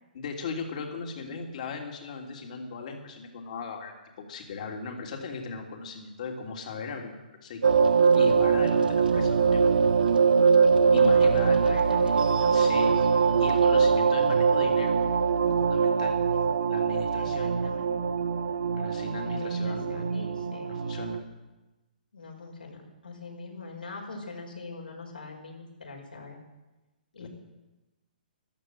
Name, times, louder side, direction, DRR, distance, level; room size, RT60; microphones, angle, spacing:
voice 1, 0.1-7.8 8.1-9.6 10.9-11.6 12.5-12.9 13.4-14.9 15.6-16.2 16.7-17.5 18.7-20.1 20.7-21.2 27.2-27.3, left 4 dB, 55° left, 2 dB, 3.2 m, -37 dB
sound 1, 7.6-21.2, right 5 dB, 75° right, 1.3 m, -23 dB
voice 2, 11.0-13.1 16.3-16.4 17.1-18.0 19.1-20.7 22.1-26.4 27.1-27.3, left 3 dB, 85° left, -1 dB, 5.5 m, -43 dB
14.5 x 12.5 x 7.9 m, 1.1 s
figure-of-eight pair, 125°, 5 cm